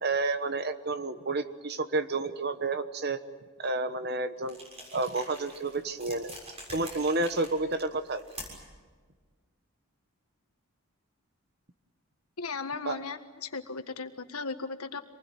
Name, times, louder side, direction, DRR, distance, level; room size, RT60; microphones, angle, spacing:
voice 1, 0.0-3.2 3.6-4.6 4.9-6.3 6.7-8.2 12.8-13.0, right 3 dB, 45° right, 11 dB, 1.2 m, -30 dB
sound 1, 4.4-8.8, equal, 25° right, 6.7 m, -46 dB
voice 2, 12.4-15.0, left 4 dB, 80° left, 8 dB, 1.6 m, -36 dB
26.5 x 20.0 x 9.2 m, 1.5 s
head